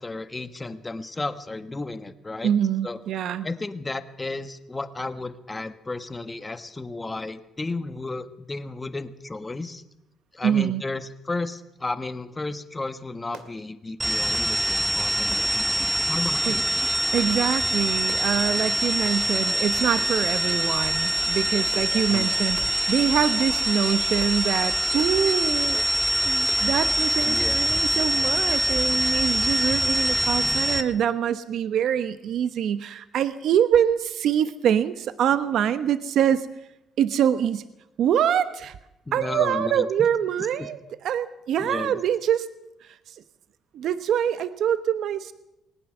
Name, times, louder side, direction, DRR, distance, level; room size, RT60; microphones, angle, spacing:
voice 1, 0.0-2.5 2.8-3.0 3.4-9.8 10.3-16.6 22.1-22.3 27.2-27.6 39.1-39.9 40.4-40.7 41.6-42.0, left 3 dB, 20° left, 9 dB, 1.5 m, -33 dB
voice 2, 2.4-3.5 10.4-10.8 16.4-16.6 17.1-25.9 26.2-36.5 37.0-37.6 38.0-38.7 39.1-42.5 43.1-43.2 43.7-45.3, right 9 dB, 70° right, 12 dB, 1.0 m, -24 dB
sound 1, 13.3-13.5 14.3-14.6 15.3-15.5 16.2-16.4 17.2-17.4 18.1-18.3 19.0-19.2 20.0-20.2 20.8-21.0 21.7-21.9 22.6-22.7 23.4-23.6 24.2-24.4 25.0-25.2 25.7-25.9 26.5-26.7 27.2-27.4 28.0-28.2, right 7 dB, 90° right, 2.4 m, -44 dB
sound 2, 14.0-30.8, right 1 dB, 20° right, 1.7 m, -24 dB
20.5 x 19.0 x 6.7 m, 0.88 s
cardioid pair, 90°, 0 cm